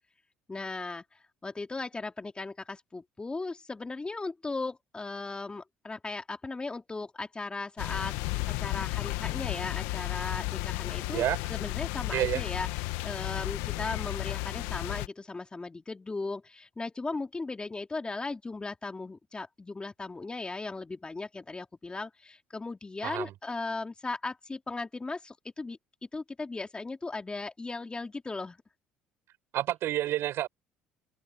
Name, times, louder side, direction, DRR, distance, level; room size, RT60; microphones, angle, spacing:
voice 1, 0.5-1.0 1.4-8.2 8.5-11.2 11.5-12.7 13.0-25.8 26.1-28.6, left 3 dB, 20° left, 3.2 m, -37 dB
sound 1, 7.8-15.1, left 21 dB, 80° left, 1.6 m, -33 dB
voice 2, 12.1-12.4 23.0-23.3 29.5-30.5, right 13 dB, 65° right, 7.5 m, -29 dB
hypercardioid pair, 70°, 5 cm